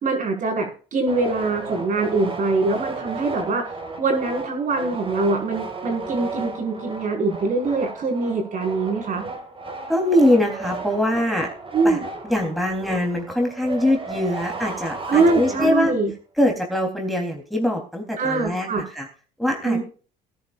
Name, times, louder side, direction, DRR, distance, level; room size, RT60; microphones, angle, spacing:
voice 1, 0.0-3.7 4.0-9.2 11.7-12.0 15.1-16.1 18.2-18.8 19.6-19.8, right 3 dB, 50° right, 2 dB, 5.4 m, -23 dB
sound 1, 1.1-16.0, right 3 dB, 30° right, 4.4 m, -34 dB
voice 2, 9.9-11.5 11.8-12.0 12.3-15.9 16.4-19.1 19.4-19.8, left 1 dB, ahead, 1 dB, 3.5 m, -22 dB
20.5 x 10.5 x 2.5 m, 0.39 s
cardioid pair, 110°, 17 cm